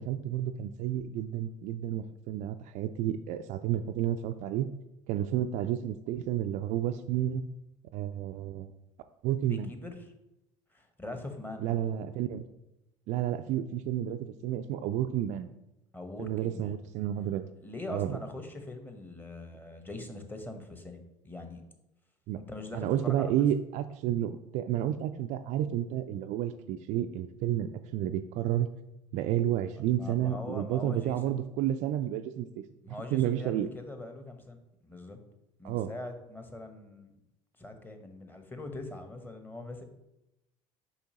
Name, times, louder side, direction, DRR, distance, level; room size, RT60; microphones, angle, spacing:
voice 1, 0.0-4.7 5.1-7.4 7.9-8.7 9.2-9.7 11.6-12.5 13.1-15.5 16.2-17.5 17.9-18.2 22.3-22.4 22.7-28.7 29.1-32.5 33.1-33.7 35.6-35.9, right 11 dB, 45° right, 8 dB, 0.4 m, -31 dB
voice 2, 9.4-10.1 10.7-11.7 15.9-16.7 17.6-21.6 22.5-23.3 29.7-31.4 32.8-34.6 34.8-35.2 35.6-37.1 37.6-39.8, left 2 dB, 10° left, 6 dB, 1.1 m, -42 dB
6.9 x 5.5 x 2.9 m, 0.89 s
figure-of-eight pair, 65°, 17 cm